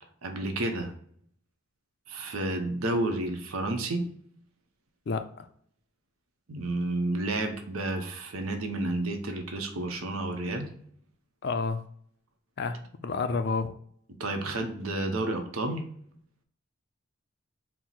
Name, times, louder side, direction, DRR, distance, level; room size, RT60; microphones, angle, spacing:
voice 1, 0.2-0.9 2.1-4.0 6.5-10.7 14.2-15.8, right 2 dB, 90° right, 5 dB, 0.7 m, -31 dB
voice 2, 11.4-11.8 12.6-13.7, left 4 dB, 50° left, 9 dB, 0.4 m, -29 dB
4.4 x 2.0 x 3.9 m, 0.64 s
head